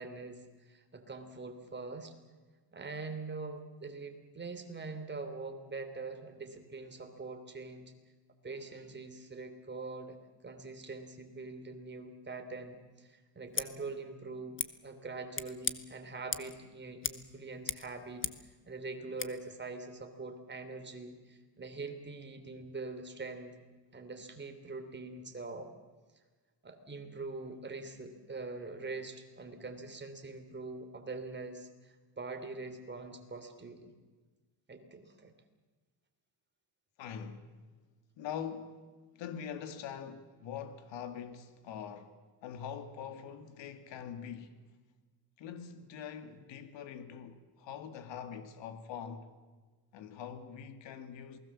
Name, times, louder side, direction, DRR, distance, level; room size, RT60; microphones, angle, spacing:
voice 1, 0.0-2.1 2.7-7.9 8.4-10.2 10.4-23.6 23.9-25.7 26.6-33.9 34.7-35.3, right 3 dB, 25° right, 3.2 m, -43 dB
Scissors, 13.5-13.7 14.6-14.7 15.3-15.8 16.3-16.6 17.0-17.3 17.5-18.5 19.2-19.3, left 6 dB, 30° left, 1.2 m, -37 dB
voice 2, 37.0-37.5 38.2-38.9 39.1-44.6 45.4-49.3 49.9-51.4, left 8 dB, 85° left, 2.2 m, -43 dB
28.0 x 20.0 x 7.4 m
cardioid pair, 125°, 43 cm